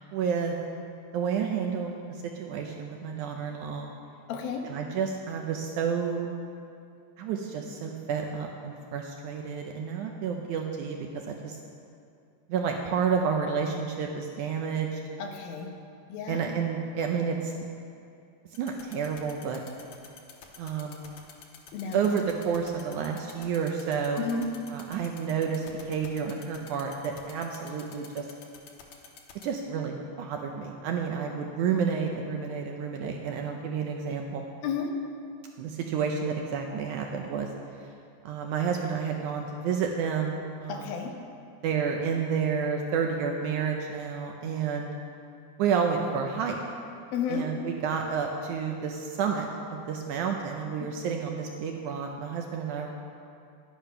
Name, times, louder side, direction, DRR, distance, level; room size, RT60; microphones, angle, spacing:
voice 1, 0.1-0.6 1.1-2.0 2.4-3.9 4.7-6.3 7.2-11.6 12.5-15.0 16.3-17.5 18.6-19.6 20.6-21.0 21.9-24.3 24.7-28.3 29.4-34.5 35.6-37.5 38.2-41.0 41.6-44.9 45.6-46.6 47.3-52.9, right 6 dB, 80° right, 2 dB, 1.9 m, -30 dB
voice 2, 4.3-4.7 15.2-15.7 16.1-16.5 21.7-22.1 24.2-24.5 34.6-34.9 40.7-41.1 47.1-47.5 50.8-50.9, left 5 dB, 90° left, 3 dB, 2.8 m, -32 dB
sound 1, 18.5-29.4, left 8 dB, 70° left, 1.9 m, -47 dB
10.5 x 9.0 x 5.6 m, 2.5 s
omnidirectional pair, 4.1 m